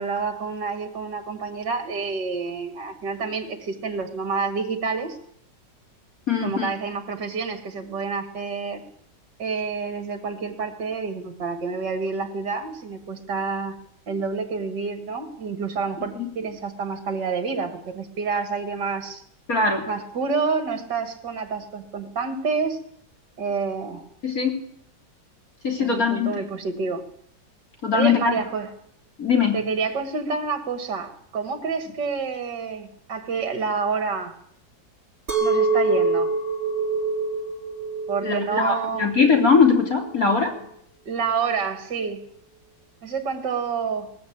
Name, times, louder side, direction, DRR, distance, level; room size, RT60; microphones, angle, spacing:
voice 1, 0.0-5.2 6.4-8.8 9.4-13.8 14.1-19.2 19.9-22.8 23.4-24.0 25.8-27.0 27.9-28.7 29.5-34.4 35.4-36.3 38.1-39.1 41.1-42.2 43.0-44.1, right 5 dB, 65° right, 6 dB, 2.7 m, -28 dB
voice 2, 6.3-6.7 16.2-16.3 19.5-19.8 24.2-24.6 25.6-26.3 27.8-28.4 29.2-29.6 38.2-40.5, left 5 dB, 50° left, 2 dB, 4.0 m, -21 dB
Chink clink, 35.3-40.5, right 4 dB, 35° right, 3.8 m, -25 dB
21.0 x 21.0 x 8.8 m, 0.68 s
omnidirectional pair, 2.0 m